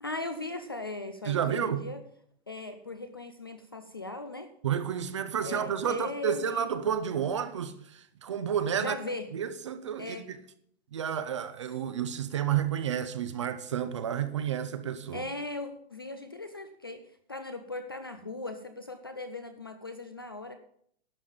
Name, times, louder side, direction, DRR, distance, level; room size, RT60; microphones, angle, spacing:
voice 1, 0.0-2.0 2.5-4.5 5.4-6.7 8.7-9.3 10.0-10.3 15.1-17.0 17.3-20.5, left 2 dB, 25° left, 0.4 m, -38 dB
voice 2, 1.2-1.8 4.6-9.0 9.3-10.4 10.9-15.3, right 8 dB, 30° right, 0.6 m, -31 dB
12.0 x 5.5 x 8.6 m
hypercardioid pair, 170°, 32 cm